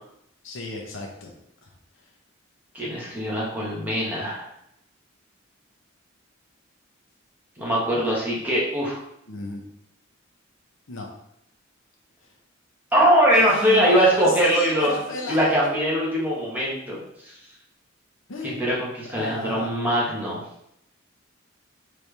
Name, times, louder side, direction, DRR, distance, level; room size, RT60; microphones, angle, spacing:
voice 1, 0.4-1.3 1.6-1.7 9.3-9.6 10.9-11.1 12.2-12.3 13.3-15.7 18.3-18.7 19.1-19.7, left 2 dB, 70° left, 0 dB, 0.8 m, -33 dB
voice 2, 2.7-4.5 7.6-9.0 12.9-14.9 15.3-17.0 18.4-20.4, equal, 10° right, -6 dB, 1.3 m, -22 dB
4.2 x 3.4 x 3.3 m, 0.75 s
head